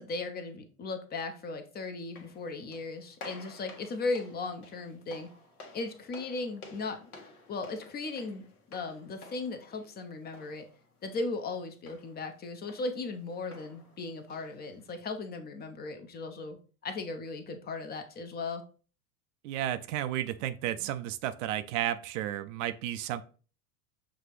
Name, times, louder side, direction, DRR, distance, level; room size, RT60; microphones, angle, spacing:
voice 1, 0.0-5.3 5.7-7.1 7.5-8.4 8.7-10.7 11.0-16.6 16.8-18.6, left 3 dB, 20° left, 7 dB, 0.5 m, -37 dB
sound 1, 2.0-15.0, left 2 dB, 85° left, 1.2 m, -53 dB
voice 2, 19.4-23.2, right 12 dB, 55° right, 12 dB, 0.5 m, -33 dB
6.1 x 2.4 x 3.1 m, 0.38 s
hypercardioid pair, 90°, 44 cm